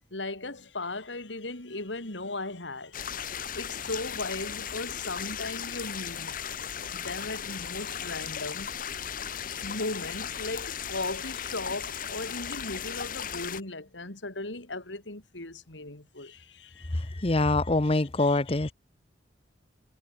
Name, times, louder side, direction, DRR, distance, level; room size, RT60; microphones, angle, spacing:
voice 1, 0.1-3.0 3.5-6.3 6.9-17.5 17.9-18.6, left 2 dB, 85° left, 4.1 m, -37 dB
sound 1, 2.9-13.6, left 8 dB, 50° left, 1.2 m, -36 dB
voice 2, 16.9-18.7, left 2 dB, 30° left, 0.9 m, -25 dB
head